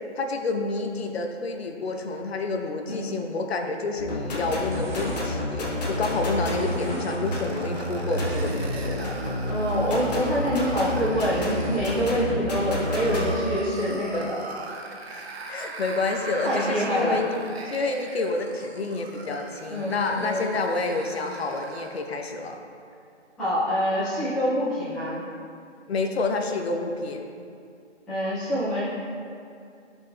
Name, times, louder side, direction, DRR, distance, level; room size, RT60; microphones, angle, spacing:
voice 1, 0.2-9.2 15.1-17.4 17.6-22.6 25.9-27.2, left 3 dB, 60° left, 3 dB, 0.8 m, -29 dB
sound 1, 3.8-4.1 4.4-6.2 6.5-7.2 7.5-8.9 9.2-9.3, right 2 dB, 40° right, 1.1 m, -42 dB
sound 2, 4.0-13.3, left 1 dB, 35° left, 1.3 m, -29 dB
sound 3, 5.4-22.0, right 3 dB, 60° right, 0.8 m, -40 dB
voice 2, 9.5-14.3 16.4-17.2 19.6-20.5 23.4-25.2 28.1-28.8, equal, ahead, -17 dB, 0.7 m, -26 dB
11.0 x 5.8 x 2.2 m, 2.4 s
figure-of-eight pair, 155°, 36 cm